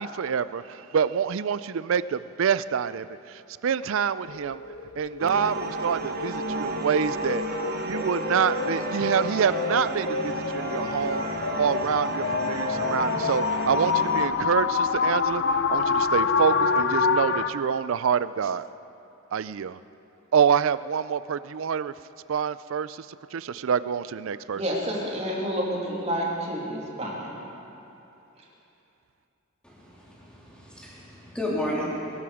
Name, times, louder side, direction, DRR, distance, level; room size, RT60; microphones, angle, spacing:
voice 1, 0.0-4.6 5.0-7.4 7.7-11.3 11.6-15.4 15.7-18.7 19.3-19.8 20.3-21.9 22.3-23.1 23.3-24.6, right 7 dB, 70° right, 16 dB, 0.4 m, -26 dB
sound 1, 4.3-17.5, left 5 dB, 55° left, 0.6 m, -28 dB
sound 2, 5.2-14.3, right 2 dB, 45° right, 1.2 m, -33 dB
Wind instrument woodwind instrument, 6.6-9.9 10.4-14.2, left 1 dB, 70° left, 4.1 m, -39 dB
voice 2, 24.5-27.3, equal, 30° right, -3 dB, 2.8 m, -29 dB
voice 3, 29.6-32.2, left 1 dB, 5° left, -6 dB, 3.4 m, -33 dB
22.0 x 13.0 x 4.9 m, 2.9 s
head